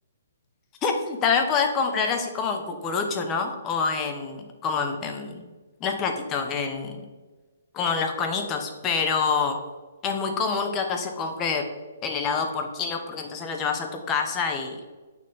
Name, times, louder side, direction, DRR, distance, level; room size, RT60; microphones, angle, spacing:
voice 1, 0.8-5.4 5.8-7.0 7.7-9.6 10.0-11.7 12.0-14.9, left 5 dB, 20° left, 5 dB, 1.1 m, -26 dB
8.3 x 6.8 x 3.6 m, 1.2 s
hypercardioid pair, 150°, 0 cm